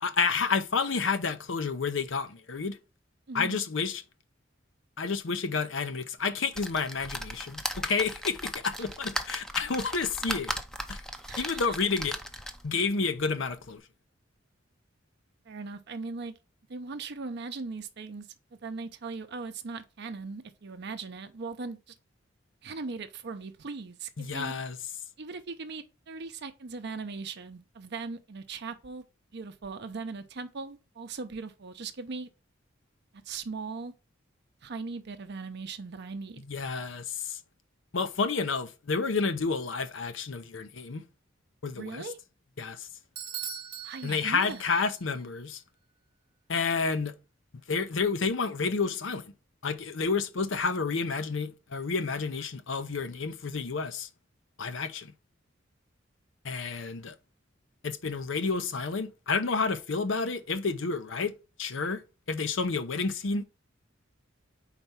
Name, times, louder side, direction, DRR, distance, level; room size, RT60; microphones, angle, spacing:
voice 1, 0.0-2.8 3.3-4.0 5.0-10.5 10.9-11.0 11.4-12.2 12.6-13.8 24.2-24.8 36.5-37.4 37.9-41.0 41.6-42.1 42.6-42.9 44.0-45.6 46.5-47.1 47.7-49.3 49.6-54.1 54.6-55.1 56.4-57.1 57.8-61.3 61.6-62.0 62.3-63.4, left 4 dB, 70° left, 0.7 m, -30 dB
voice 2, 3.3-3.6 11.2-11.8 15.5-16.3 16.7-21.9 22.6-24.5 25.2-29.0 29.3-32.3 33.2-33.9 34.6-36.4 41.7-42.2 43.8-44.6, right 4 dB, 60° right, 0.6 m, -39 dB
sound 1, 6.5-12.8 13.3-13.4 13.7-13.8, equal, 5° left, 0.6 m, -37 dB
Bell / Doorbell, 43.2-45.0, right 8 dB, 25° right, 0.9 m, -40 dB
4.5 x 4.1 x 5.4 m
head